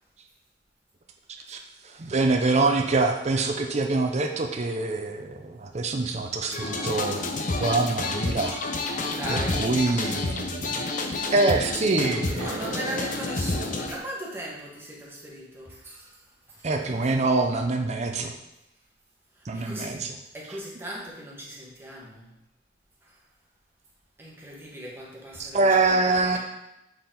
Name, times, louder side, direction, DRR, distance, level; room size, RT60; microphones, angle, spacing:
voice 1, 1.8-7.3 7.6-8.6 9.3-10.8 11.3-13.1 13.5-13.7 16.6-18.3 19.5-20.2 20.5-20.6 25.4-26.4, right 3 dB, 40° right, 3 dB, 0.6 m, -25 dB
sound 1, 6.5-13.9, left 2 dB, 45° left, 0.7 m, -29 dB
voice 2, 9.0-9.8 12.2-16.2 16.5-16.7 19.3-20.1 20.3-22.3 23.0-23.2 24.2-26.4, right 1 dB, 15° right, -4 dB, 1.5 m, -38 dB
7.7 x 4.3 x 3.8 m, 0.88 s
head